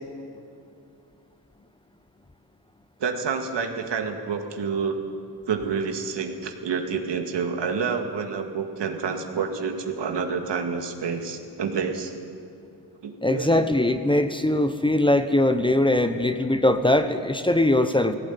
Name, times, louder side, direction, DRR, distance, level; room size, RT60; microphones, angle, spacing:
voice 1, 3.0-5.0 5.5-12.1 13.0-13.7 15.3-15.4, right 5 dB, 70° right, 5 dB, 2.3 m, -28 dB
voice 2, 13.2-18.1, left 1 dB, 10° left, 9 dB, 1.1 m, -21 dB
18.0 x 17.0 x 9.5 m, 2.5 s
cardioid pair, 75°, 44 cm